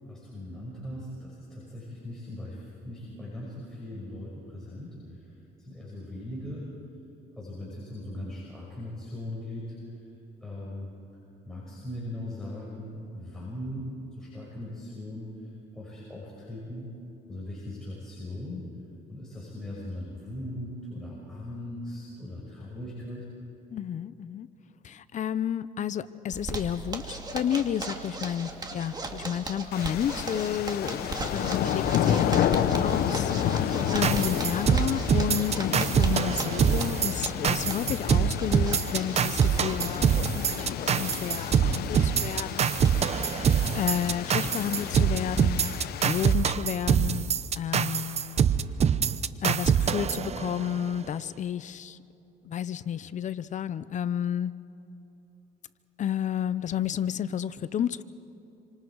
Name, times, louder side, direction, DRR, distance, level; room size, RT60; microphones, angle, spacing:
voice 1, 0.0-5.2 5.6-6.7 7.4-9.7 10.4-10.9 11.4-15.3 15.7-16.9 17.3-18.6 19.1-23.3, left 1 dB, 5° left, -7 dB, 6.0 m, -39 dB
voice 2, 23.7-24.5 24.8-43.3 43.7-48.4 49.4-52.0 52.4-54.5 56.0-58.0, left 9 dB, 45° left, 15 dB, 0.7 m, -31 dB
Zipper (clothing), 26.3-44.5 44.8-44.9 45.2-45.3 45.6-46.1, right 2 dB, 25° right, 2.2 m, -38 dB
sound 1, 29.7-46.3, left 10 dB, 70° left, 1.0 m, -31 dB
sound 2, 34.0-50.9, right 7 dB, 40° right, 0.7 m, -25 dB
27.5 x 26.0 x 4.8 m, 3.0 s
cardioid pair, 110°, 17 cm